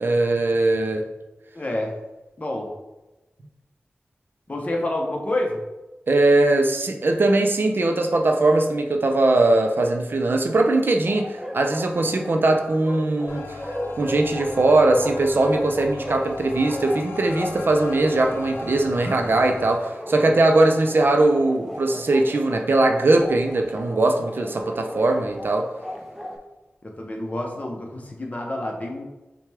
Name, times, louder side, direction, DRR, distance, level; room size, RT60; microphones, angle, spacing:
voice 1, 0.0-1.0 6.1-13.6 14.0-25.7, right 2 dB, 60° right, 4 dB, 0.5 m, -20 dB
voice 2, 1.5-1.9 2.4-2.7 4.5-5.6 26.8-29.0, left 1 dB, 35° left, 0 dB, 0.8 m, -28 dB
Bark, 11.0-26.4, equal, ahead, 0.6 m, -36 dB
sound 1, 13.3-19.8, left 3 dB, 90° left, 0.4 m, -38 dB
5.7 x 2.3 x 3.4 m, 1.0 s
wide cardioid pair, 95°, 4 cm